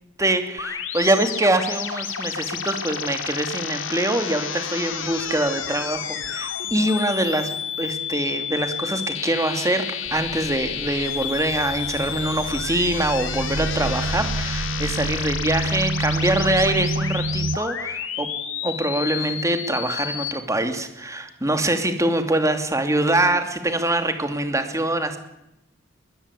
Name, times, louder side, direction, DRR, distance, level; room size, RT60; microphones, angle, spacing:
voice 1, 0.2-7.5 7.8-18.3 18.6-25.2, right 1 dB, 15° right, 7 dB, 2.8 m, -24 dB
sound 1, 0.6-20.3, left 8 dB, 75° left, 3.0 m, -31 dB
sound 2, 10.1-17.6, right 2 dB, 75° right, 0.8 m, -29 dB
21.5 x 20.5 x 8.4 m, 0.89 s
head